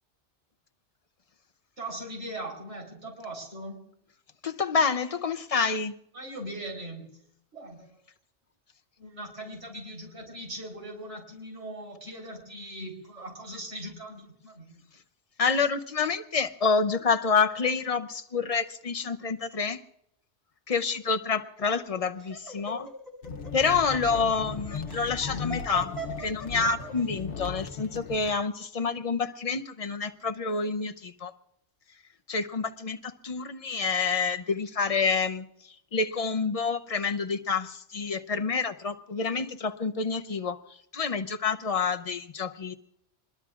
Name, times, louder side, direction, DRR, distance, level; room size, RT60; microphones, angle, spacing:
voice 1, 1.8-3.9 6.1-7.3 7.5-8.0 9.0-14.8, right 1 dB, 90° right, 0 dB, 4.3 m, -40 dB
voice 2, 4.4-5.9 15.4-19.8 20.7-22.9 23.5-31.3 32.3-42.7, left 5 dB, 40° left, 8 dB, 0.6 m, -28 dB
Laughter, 21.6-27.0, right 3 dB, 15° left, 7.4 m, -41 dB
sound 1, 23.2-28.3, left 5 dB, 85° left, 1.2 m, -37 dB
26.5 x 21.0 x 2.4 m, 0.74 s
omnidirectional pair, 1.2 m